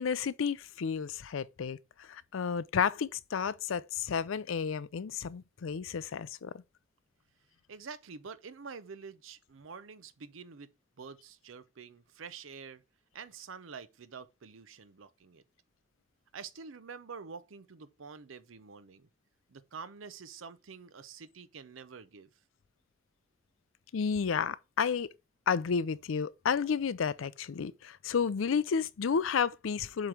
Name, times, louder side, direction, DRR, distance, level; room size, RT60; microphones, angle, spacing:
voice 1, 0.0-6.5 23.9-25.1 25.5-30.1, left 6 dB, 85° left, 0.4 m, -31 dB
voice 2, 7.7-10.7 11.0-12.8 13.1-15.4 16.3-19.1 19.5-22.3, right 5 dB, 80° right, 0.6 m, -47 dB
7.6 x 3.1 x 4.9 m
head